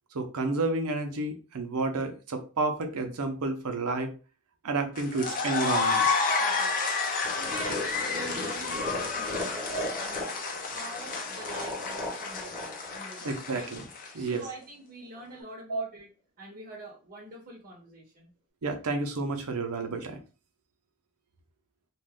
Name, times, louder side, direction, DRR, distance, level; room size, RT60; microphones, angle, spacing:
voice 1, 0.1-4.1 4.6-6.1 13.2-13.9 14.1-14.4 15.7-15.8 18.6-20.2, right 3 dB, 85° right, 5 dB, 0.7 m, -30 dB
sound 1, 5.0-14.3, left 4 dB, 40° left, 0.5 m, -30 dB
voice 2, 6.4-6.9 7.4-10.3 10.5-13.7 14.1-16.1 16.4-18.3, right 2 dB, 40° right, -2 dB, 0.8 m, -45 dB
sound 2, 7.2-14.1, left 2 dB, 5° right, 0.9 m, -38 dB
2.5 x 2.3 x 3.4 m, 0.35 s
head